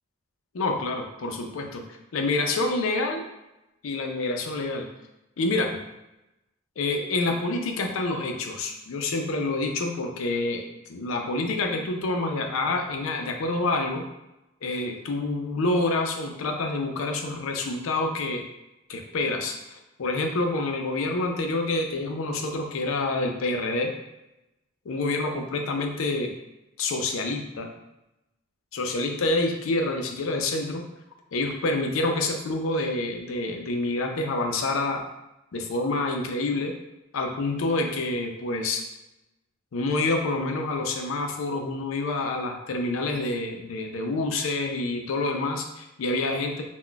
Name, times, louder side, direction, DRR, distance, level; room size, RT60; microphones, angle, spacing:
voice 1, 0.5-1.8 2.1-3.2 3.8-4.9 5.4-5.7 6.8-10.6 10.9-14.0 14.6-18.4 18.9-19.5 20.0-23.9 24.9-26.3 26.8-27.7 28.7-30.8 31.3-35.0 35.5-36.7 37.1-38.8 39.7-46.6, left 2 dB, 80° left, 3 dB, 0.4 m, -27 dB
2.2 x 2.1 x 3.8 m, 0.93 s
head